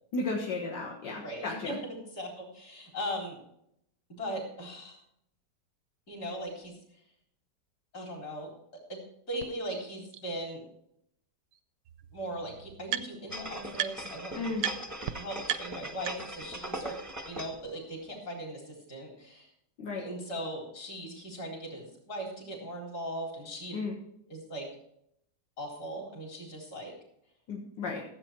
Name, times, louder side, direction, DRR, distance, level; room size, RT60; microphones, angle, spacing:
voice 1, 0.1-1.8 14.4-14.6 19.8-20.0 23.7-24.0 27.5-28.0, left 3 dB, 80° left, -3 dB, 2.2 m, -34 dB
voice 2, 1.1-3.4 4.1-5.0 6.1-6.8 7.9-8.5 8.9-10.6 12.1-14.5 15.1-17.0 17.3-19.5 20.0-23.8 24.3-24.7 25.6-26.9, equal, 60° left, -1 dB, 4.3 m, -39 dB
sound 1, 9.4-9.5 10.1-10.2 11.5-11.6 11.8-13.4 13.7-14.2 14.6-14.7 15.0-15.1 15.4-16.5, right 11 dB, 90° right, 1.3 m, -35 dB
sound 2, 13.3-17.7 18.1-18.2, right 1 dB, 15° right, 0.7 m, -40 dB
15.0 x 8.0 x 4.4 m, 0.75 s
omnidirectional pair, 1.9 m